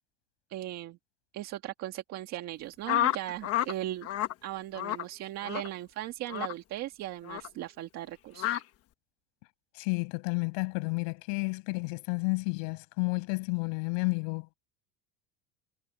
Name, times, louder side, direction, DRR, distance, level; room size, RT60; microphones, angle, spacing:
voice 1, 0.5-1.0 1.3-4.1 4.4-8.6, right 14 dB, 45° right, 1.7 m, -38 dB
sound 1, 2.9-3.7 4.0-4.3 4.8-5.0 5.4-5.7 6.3-6.5 7.3-7.5 8.4-8.6, left 13 dB, 40° left, 1.1 m, -29 dB
voice 2, 9.7-14.5, left 35 dB, 90° left, 5.8 m, -31 dB
cardioid pair, 165°, 37 cm